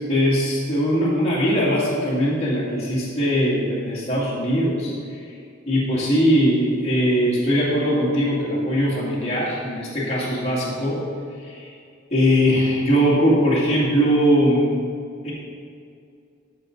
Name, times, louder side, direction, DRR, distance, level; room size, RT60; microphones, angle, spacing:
voice 1, 0.1-5.2 5.7-11.0 11.4-11.7 12.1-14.7 15.2-15.3, equal, 30° left, -8 dB, 2.4 m, -20 dB
13.0 x 6.8 x 4.0 m, 2.4 s
head